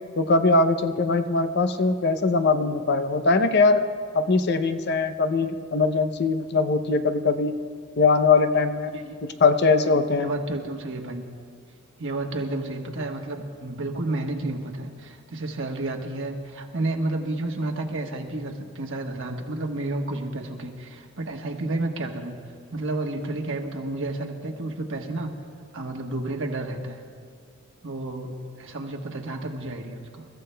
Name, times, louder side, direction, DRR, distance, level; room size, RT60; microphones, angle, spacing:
voice 1, 0.2-3.9 4.1-7.6 8.0-8.9 9.2-10.3, left 3 dB, 50° left, 9 dB, 0.6 m, -21 dB
voice 2, 10.2-11.2 12.0-22.4 22.7-25.3 25.7-27.0 27.8-30.3, right 2 dB, 60° right, 2 dB, 1.3 m, -31 dB
28.5 x 14.5 x 2.2 m, 2.1 s
head